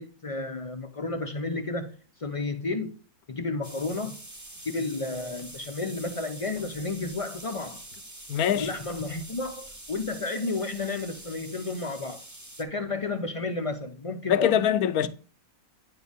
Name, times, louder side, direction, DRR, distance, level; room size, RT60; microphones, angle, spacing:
voice 1, 0.0-1.9 2.2-2.9 3.3-4.2 4.7-7.8 8.5-12.2 12.6-14.8, left 3 dB, 50° left, 0.4 m, -32 dB
sound 1, 3.6-12.6, right 1 dB, 15° right, 0.8 m, -45 dB
voice 2, 8.3-8.7 14.3-15.1, left 9 dB, 80° left, 1.1 m, -23 dB
9.5 x 4.5 x 3.5 m
omnidirectional pair, 1.6 m